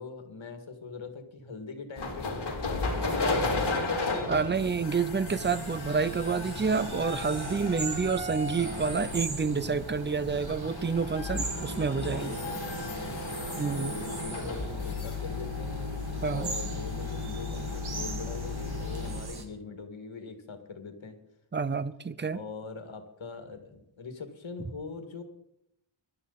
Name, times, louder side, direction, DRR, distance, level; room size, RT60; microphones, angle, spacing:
voice 1, 0.0-3.5 5.6-5.7 9.6-9.9 11.6-13.3 13.7-21.2 22.3-25.2, left 4 dB, 75° left, 6 dB, 2.3 m, -42 dB
sound 1, 2.0-19.3, left 3 dB, 60° left, 3.2 m, -34 dB
voice 2, 4.3-12.4 13.6-13.9 16.2-16.5 21.5-22.4, right 5 dB, 25° right, 15 dB, 0.6 m, -29 dB
sound 2, 5.3-19.5, right 3 dB, 55° right, 2.1 m, -41 dB
22.0 x 12.0 x 4.2 m, 0.81 s
wide cardioid pair, 130°, 47 cm